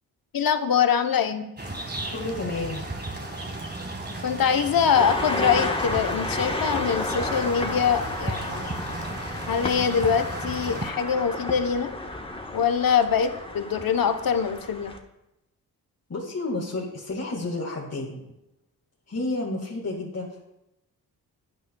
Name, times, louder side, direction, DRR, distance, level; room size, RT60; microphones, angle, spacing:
voice 1, 0.3-1.5 4.2-8.7 9.5-11.9 12.5-15.0, left 7 dB, 55° left, 8 dB, 0.9 m, -24 dB
sound 1, 1.6-10.9, right 2 dB, 25° right, 1.7 m, -35 dB
voice 2, 2.1-2.8 16.1-18.2 19.1-20.4, left 2 dB, 40° left, -3 dB, 1.8 m, -31 dB
sound 2, 4.9-15.0, left 2 dB, 15° left, 1.2 m, -32 dB
10.0 x 9.0 x 2.2 m, 0.91 s
supercardioid pair, 40°, 41 cm